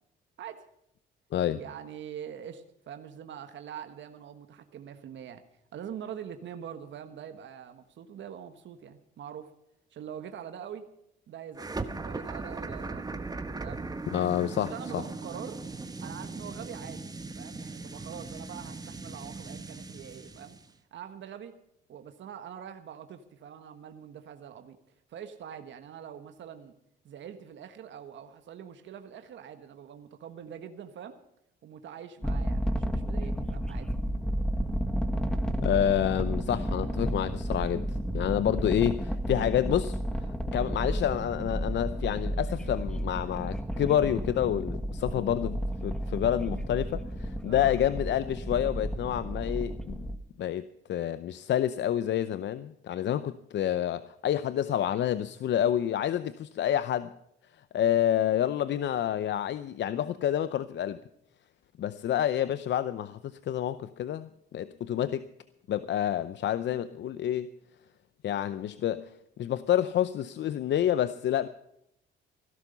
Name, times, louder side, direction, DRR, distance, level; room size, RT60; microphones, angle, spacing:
voice 1, 1.5-5.4 5.7-9.5 9.9-10.9 11.3-11.7 12.0-13.2 13.6-14.2 14.7-15.6 16.0-17.0 17.3-20.6 20.9-21.5 21.9-24.8 25.1-26.7 27.0-31.2 31.6-33.9 47.4-47.8, right 8 dB, 70° right, 8 dB, 1.4 m, -44 dB
sound 1, 11.6-20.7, right 3 dB, 20° right, 1.3 m, -39 dB
voice 2, 14.1-15.0 35.6-37.9 38.1-50.0 50.4-57.1 57.7-61.0 61.8-65.2 65.7-67.5 68.2-69.1 69.4-71.5, left 10 dB, 65° left, 14 dB, 0.7 m, -28 dB
sound 2, 32.2-50.2, equal, 5° left, 1.3 m, -32 dB
17.0 x 12.0 x 5.6 m, 0.77 s
cardioid pair, 90°, 20 cm